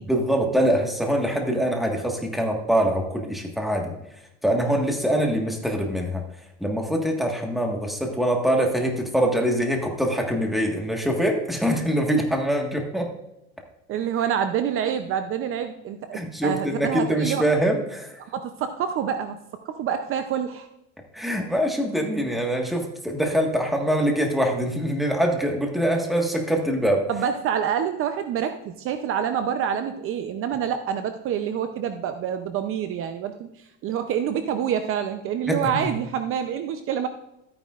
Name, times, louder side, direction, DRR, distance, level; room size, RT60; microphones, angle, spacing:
voice 1, 0.0-4.0 4.4-6.2 6.6-13.1 16.1-18.1 21.1-27.0 35.5-35.9, right 1 dB, ahead, 1 dB, 1.6 m, -24 dB
voice 2, 13.9-17.4 18.3-19.4 19.6-20.7 27.1-37.1, right 8 dB, 45° right, 8 dB, 0.7 m, -27 dB
13.0 x 9.4 x 2.5 m, 0.86 s
cardioid pair, 135°, 30 cm